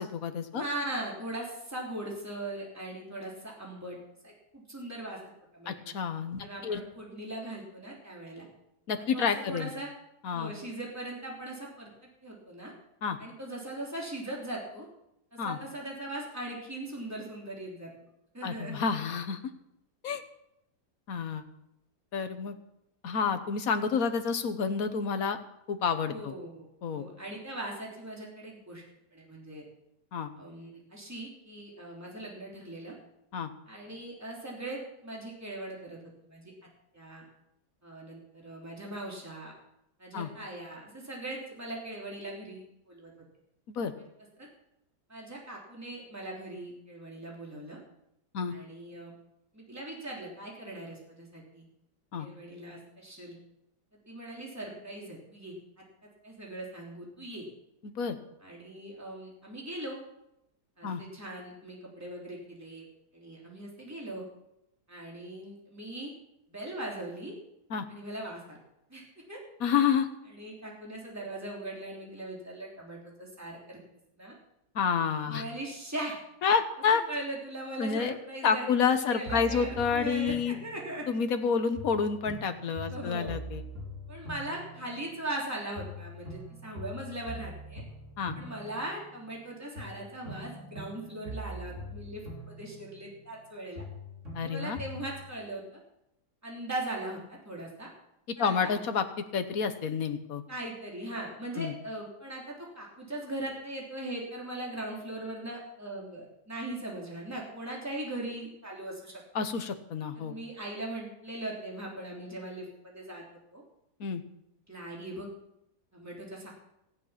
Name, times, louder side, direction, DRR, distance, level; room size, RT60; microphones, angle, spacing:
voice 1, 0.0-0.6 5.7-6.8 8.9-9.7 10.2-10.5 13.0-13.2 15.4-15.6 18.4-19.4 20.0-20.2 21.1-21.4 22.1-22.5 23.0-25.4 25.7-26.3 26.8-27.0 30.1-30.3 33.3-33.5 40.1-40.3 43.7-43.9 48.3-48.5 52.1-52.3 57.8-58.2 60.8-61.0 67.7-67.8 69.6-70.1 74.7-75.4 76.4-77.0 77.8-78.1 78.4-80.6 81.1-83.6 88.2-88.3 94.3-94.8 98.3-99.0 99.3-100.4 101.6-101.7 109.3-110.4 114.0-114.2, left 6 dB, 60° left, 9 dB, 1.5 m, -29 dB
voice 2, 0.5-4.0 4.2-5.2 5.5-5.7 6.4-8.5 9.0-9.9 10.3-11.9 12.2-12.7 13.2-14.8 15.3-17.9 18.3-18.8 26.1-26.6 26.9-28.8 29.1-29.6 30.3-32.9 33.7-36.5 36.9-37.2 37.8-39.5 40.0-43.1 44.4-44.5 45.1-47.8 48.5-49.1 49.5-51.6 52.2-53.4 54.1-55.5 56.2-57.4 58.4-60.0 60.8-62.9 63.1-64.2 64.9-66.1 66.5-67.3 67.9-68.6 68.9-69.0 69.3-69.4 70.3-73.8 74.2-74.3 75.2-76.2 77.1-81.1 82.9-83.3 84.1-87.8 88.3-93.8 94.4-95.8 96.4-97.9 98.4-98.7 100.5-109.2 110.1-113.2 113.5-113.6 114.7-115.3 115.9-116.5, right 1 dB, 10° right, -2 dB, 3.3 m, -40 dB
sound 1, 79.3-81.4 81.8-85.5 85.8-89.4 89.8-93.5 93.8-95.3, equal, 45° right, 3.6 m, -43 dB
15.0 x 10.0 x 5.8 m, 0.83 s
omnidirectional pair, 1.8 m